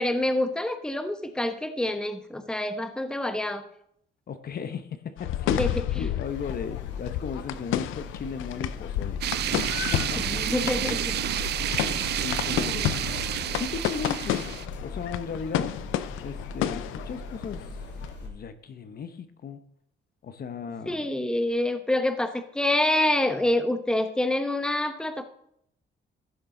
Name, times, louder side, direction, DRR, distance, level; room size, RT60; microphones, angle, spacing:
voice 1, 0.0-3.6 5.5-6.0 10.2-11.2 12.0-12.3 20.9-25.2, left 1 dB, 5° left, 8 dB, 1.0 m, -27 dB
voice 2, 4.3-5.6 6.0-9.2 9.5-10.4 11.8-13.0 13.6-14.4 14.8-15.8 16.2-17.7 18.2-19.6 20.2-21.1, left 6 dB, 50° left, 10 dB, 0.9 m, -36 dB
sound 1, 5.2-18.1, left 12 dB, 90° left, 0.5 m, -31 dB
sound 2, 6.2-18.3, left 4 dB, 65° left, 2.7 m, -39 dB
sound 3, 9.2-14.7, right 12 dB, 55° right, 0.4 m, -30 dB
15.0 x 6.7 x 3.8 m, 0.71 s
cardioid pair, 90°, 20 cm